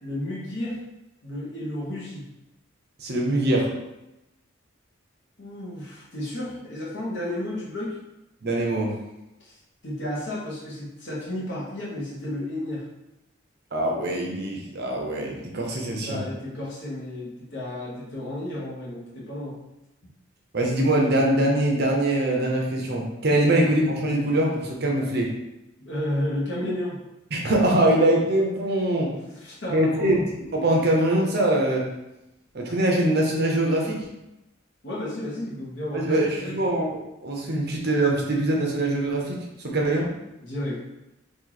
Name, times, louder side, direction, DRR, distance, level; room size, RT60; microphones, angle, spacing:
voice 1, 0.0-0.8 1.2-2.3 5.4-8.0 9.4-9.5 9.8-12.8 16.0-19.6 25.8-27.0 29.4-30.3 34.8-36.6 40.4-40.8, left 1 dB, 60° left, -5 dB, 1.1 m, -32 dB
voice 2, 3.0-3.7 8.4-8.9 13.7-16.2 20.5-25.3 27.3-29.1 29.7-30.2 30.5-31.8 32.5-34.0 35.9-39.4 39.6-40.1, right 1 dB, 50° right, -1 dB, 0.7 m, -23 dB
3.0 x 2.6 x 3.9 m, 0.94 s
head